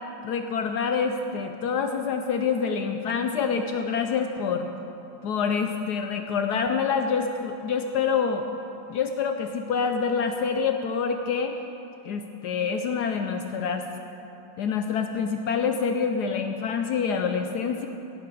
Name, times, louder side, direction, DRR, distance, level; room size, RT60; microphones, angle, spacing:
voice 1, 0.2-4.7 5.2-8.5 8.9-11.6 12.0-13.9 14.6-17.9, left 6 dB, 70° left, 6 dB, 1.0 m, -26 dB
16.5 x 8.3 x 4.6 m, 2.9 s
omnidirectional pair, 2.2 m